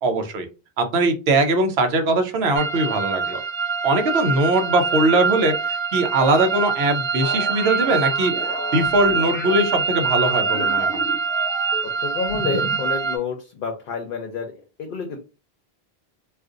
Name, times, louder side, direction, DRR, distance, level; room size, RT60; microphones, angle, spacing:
voice 1, 0.0-0.5 0.8-3.4 3.8-10.9, right 2 dB, 80° right, 7 dB, 0.9 m, -21 dB
sound 1, 2.6-13.2, right 5 dB, 40° right, 0.4 m, -24 dB
sound 2, 7.2-9.6 10.1-11.9 12.3-12.8, equal, 10° left, 0.6 m, -33 dB
voice 2, 11.8-15.2, left 5 dB, 65° left, 3 dB, 0.7 m, -29 dB
2.5 x 2.5 x 3.7 m, 0.31 s
omnidirectional pair, 1.0 m